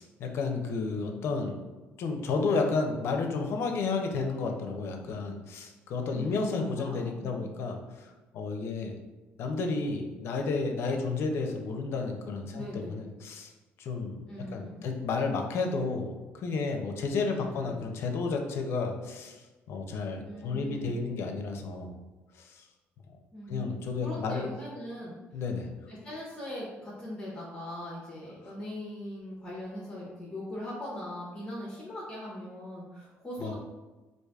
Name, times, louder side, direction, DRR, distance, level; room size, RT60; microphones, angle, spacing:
voice 1, 0.0-1.6 2.0-8.1 8.3-8.9 9.4-13.5 13.8-14.2 14.5-19.4 19.7-21.9 22.4-22.6 23.5-24.5 25.3-25.7 33.4-33.5, left 4 dB, 60° left, 3 dB, 0.5 m, -32 dB
voice 2, 6.1-7.6 12.5-13.1 14.3-14.9 17.3-17.7 20.2-21.0 23.3-25.2 25.9-33.5, left 1 dB, 20° left, -5 dB, 0.7 m, -40 dB
4.8 x 2.5 x 2.3 m, 1.2 s
cardioid pair, 135°, 5 cm